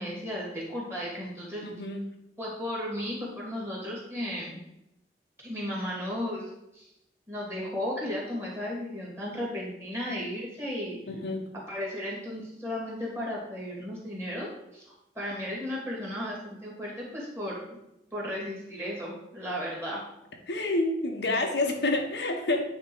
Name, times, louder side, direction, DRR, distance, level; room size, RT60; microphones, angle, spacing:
voice 1, 0.0-1.6 2.4-4.6 5.4-6.9 7.3-11.0 11.7-17.8 18.1-20.0, left 1 dB, 15° right, -5 dB, 2.5 m, -35 dB
voice 2, 1.6-2.1 11.1-11.4 20.5-22.6, left 2 dB, 75° left, 2 dB, 1.0 m, -28 dB
9.2 x 3.7 x 4.6 m, 0.84 s
head